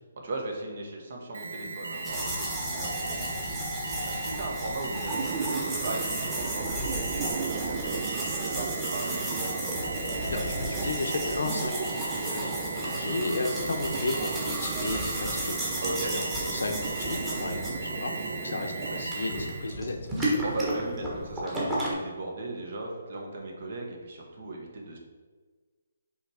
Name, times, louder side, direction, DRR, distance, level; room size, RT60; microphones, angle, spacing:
voice 1, 0.2-9.2 15.8-16.1 20.4-25.0, right 2 dB, 55° right, 1 dB, 1.2 m, -37 dB
Alarm, 1.3-19.7, right 3 dB, 80° right, 0.8 m, -37 dB
sound 1, 2.0-21.9, right 1 dB, 10° right, 1.3 m, -34 dB
sound 2, 5.1-19.0, right 6 dB, 30° right, 0.4 m, -37 dB
voice 2, 10.2-15.8 16.1-18.2 18.4-20.0, left 2 dB, 80° left, 4 dB, 0.9 m, -34 dB
6.2 x 3.2 x 4.8 m, 1.4 s
hypercardioid pair, 160°, 0 cm